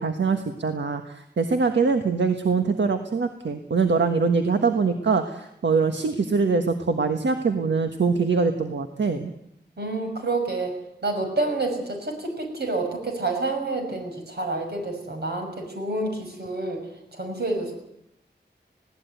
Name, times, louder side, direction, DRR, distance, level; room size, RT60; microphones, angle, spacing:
voice 1, 0.0-9.3, right 4 dB, 85° right, 6 dB, 1.5 m, -23 dB
voice 2, 9.8-10.7 11.0-16.9 17.1-17.7, right 2 dB, 65° right, 3 dB, 6.4 m, -28 dB
20.5 x 17.0 x 9.3 m, 0.78 s
wide cardioid pair, 90°, 18 cm